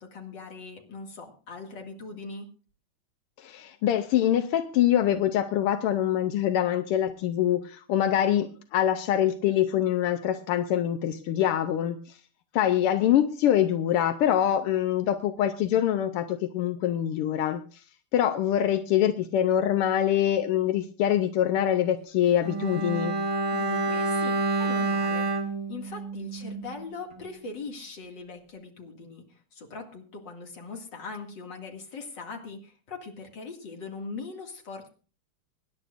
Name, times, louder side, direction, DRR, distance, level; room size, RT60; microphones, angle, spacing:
voice 1, 0.0-2.5 23.5-34.9, left 4 dB, 55° left, 2 dB, 2.8 m, -41 dB
voice 2, 3.4-12.0 12.5-17.6 18.1-23.2, left 11 dB, 85° left, 8 dB, 1.7 m, -24 dB
Bowed string instrument, 22.4-26.8 27.1-27.3, right 3 dB, 15° right, 1.3 m, -28 dB
25.0 x 10.5 x 2.5 m, 0.37 s
omnidirectional pair, 2.4 m